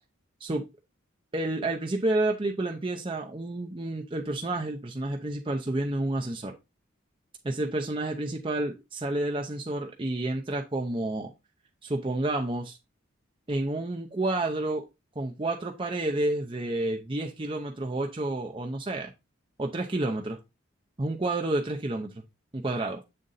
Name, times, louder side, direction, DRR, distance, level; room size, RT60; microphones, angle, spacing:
voice 1, 1.3-6.5 7.4-11.3 11.8-12.8 13.5-14.8 15.2-19.1 19.6-20.4 21.0-22.2 22.5-23.0, right 2 dB, 25° right, 1 dB, 0.7 m, -30 dB
7.7 x 3.8 x 4.0 m, 0.24 s
head